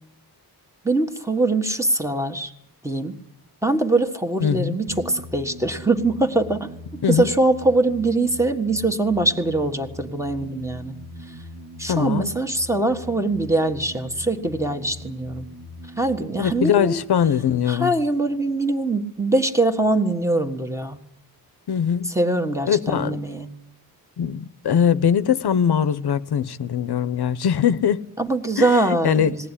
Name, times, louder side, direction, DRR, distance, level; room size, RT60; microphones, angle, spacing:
voice 1, 0.8-2.5 2.8-3.2 3.6-6.7 7.1-11.0 11.8-15.4 16.0-17.0 17.7-21.0 22.1-23.5 28.2-29.5, right 2 dB, 5° right, 1.5 m, -22 dB
voice 2, 4.4-4.8 7.0-7.3 11.9-12.3 16.4-17.9 21.7-22.1 22.7-23.2 24.2-28.0 28.6-29.3, left 8 dB, 80° left, 0.9 m, -21 dB
sound 1, 4.9-18.1, left 1 dB, 55° right, 1.8 m, -41 dB
20.5 x 17.5 x 9.9 m
wide cardioid pair, 145°, 38 cm